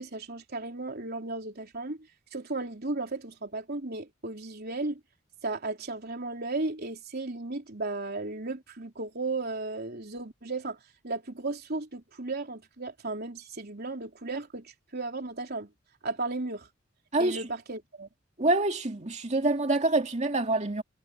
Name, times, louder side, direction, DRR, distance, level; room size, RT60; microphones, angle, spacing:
voice 1, 0.0-2.0 2.3-5.0 5.4-10.8 11.0-15.7 16.0-16.7 17.2-18.1, right 3 dB, 55° right, 3.8 m, -35 dB
voice 2, 18.4-20.8, right 2 dB, 35° right, 2.5 m, -26 dB
head